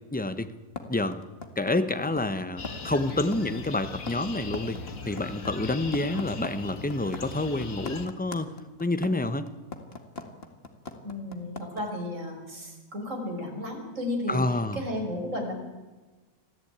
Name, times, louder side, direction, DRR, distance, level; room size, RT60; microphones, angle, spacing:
voice 1, 0.1-0.5 0.9-1.2 1.6-4.8 5.0-8.5 8.8-9.5 14.3-14.8, left 2 dB, 5° left, 10 dB, 1.0 m, -28 dB
sound 1, 0.8-11.8, left 4 dB, 45° left, 2.2 m, -40 dB
sound 2, 2.6-8.1, left 3 dB, 65° left, 2.0 m, -39 dB
voice 2, 11.0-14.4 14.8-15.5, left 1 dB, 60° right, 2 dB, 5.7 m, -33 dB
25.0 x 15.5 x 9.0 m, 1.2 s
omnidirectional pair, 1.5 m